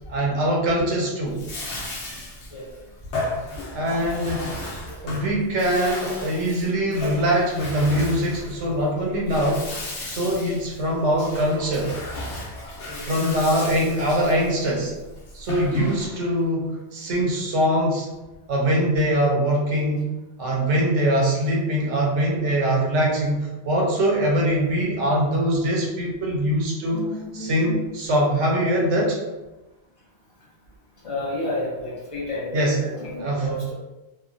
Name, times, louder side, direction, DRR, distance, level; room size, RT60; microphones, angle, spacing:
voice 1, 0.1-1.4 2.0-2.2 3.7-4.5 5.0-9.7 10.1-11.9 13.0-14.9 15.3-18.1 18.5-20.1 20.4-27.0 27.3-29.2 32.5-32.8 33.2-33.7, equal, 85° right, -2 dB, 1.0 m, -23 dB
Bathtub (filling or washing), 1.2-16.4, left 1 dB, 80° left, 1.0 m, -34 dB
voice 2, 26.9-27.9 31.0-33.7, left 1 dB, 40° left, -4 dB, 0.5 m, -31 dB
2.9 x 2.1 x 2.4 m, 1.1 s
omnidirectional pair, 1.2 m